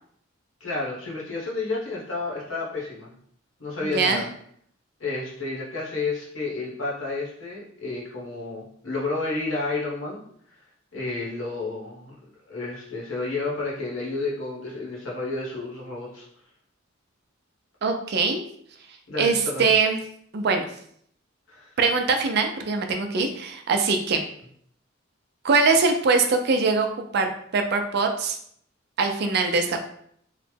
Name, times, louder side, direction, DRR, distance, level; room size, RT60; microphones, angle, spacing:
voice 1, 0.6-3.1 3.6-4.3 5.0-10.2 10.9-12.1 12.5-16.3 19.1-19.7 21.5-21.7, left 3 dB, 85° left, -4 dB, 1.1 m, -31 dB
voice 2, 3.8-4.2 17.8-18.4 19.2-20.0 20.3-20.7 21.8-24.2 25.4-28.4 29.0-29.8, right 4 dB, 55° right, 5 dB, 0.4 m, -22 dB
3.2 x 2.0 x 3.2 m, 0.65 s
head